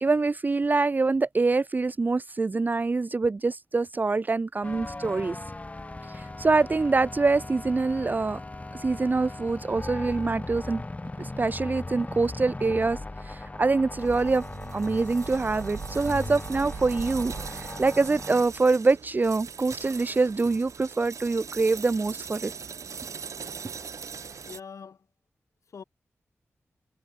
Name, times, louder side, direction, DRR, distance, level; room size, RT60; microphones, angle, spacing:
voice 1, 0.0-5.4 6.1-8.4 8.7-10.8 11.2-14.4 14.7-22.5, right 3 dB, 35° right, 0.5 m, -25 dB
sound 1, 4.6-18.4, left 2 dB, 25° left, 3.1 m, -38 dB
sound 2, 13.9-24.6, right 6 dB, 80° right, 2.0 m, -40 dB
voice 2, 24.4-25.1 25.6-25.8, left 6 dB, 80° left, 3.5 m, -45 dB
wide cardioid pair, 70°, 5 cm